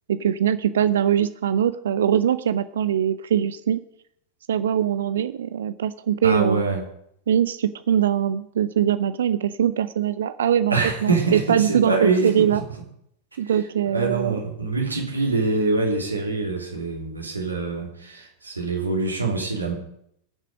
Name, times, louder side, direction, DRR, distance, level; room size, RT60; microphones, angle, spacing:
voice 1, 0.1-3.8 4.5-6.6 7.3-12.6 13.4-14.4, right 9 dB, 65° right, 14 dB, 0.5 m, -22 dB
voice 2, 6.2-6.8 10.7-12.3 13.9-19.7, right 3 dB, 80° right, -1 dB, 3.3 m, -24 dB
21.0 x 7.5 x 5.1 m, 0.72 s
figure-of-eight pair, 90°, 0 cm